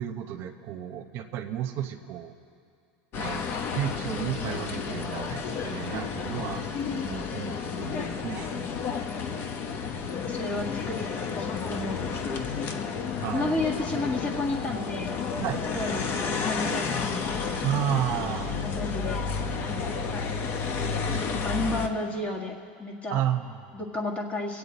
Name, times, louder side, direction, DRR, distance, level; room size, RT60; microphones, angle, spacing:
voice 1, 0.0-2.3 3.2-6.6 7.1-7.9 8.2-8.5 13.2-13.6 15.4-15.9 17.6-18.6 21.1-21.3 23.1-23.6, right 11 dB, 55° right, 6 dB, 0.9 m, -32 dB
sound 1, 3.1-21.9, left 5 dB, 45° left, 0.9 m, -31 dB
voice 2, 10.2-12.5 13.3-15.2 15.7-17.4 18.6-19.2 19.6-19.9 21.3-23.2 23.7-24.6, left 2 dB, 25° left, 0 dB, 1.9 m, -32 dB
23.5 x 8.4 x 4.2 m, 2.3 s
supercardioid pair, 115°, 5 cm